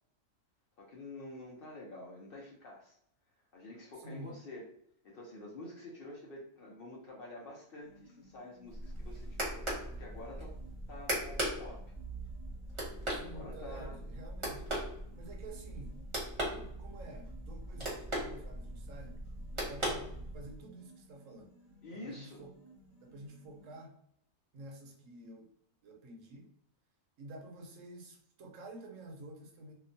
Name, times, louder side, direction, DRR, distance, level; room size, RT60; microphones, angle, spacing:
voice 1, 0.8-3.0 3.5-4.7 5.0-10.5 10.9-11.9 13.2-14.0 21.8-22.5, left 2 dB, 60° left, -2 dB, 0.6 m, -48 dB
voice 2, 4.0-4.3 13.1-14.7 15.1-16.0 16.4-19.2 19.6-21.5 21.9-22.5 23.0-24.0 24.5-25.5 25.8-26.5 27.2-29.7, right 1 dB, 75° right, 3 dB, 1.0 m, -50 dB
sound 1, 7.8-23.8, equal, 85° left, 1.2 m, -60 dB
sound 2, 8.7-20.6, right 1 dB, 25° right, 0.8 m, -39 dB
2.9 x 2.1 x 2.5 m, 0.71 s
omnidirectional pair, 1.4 m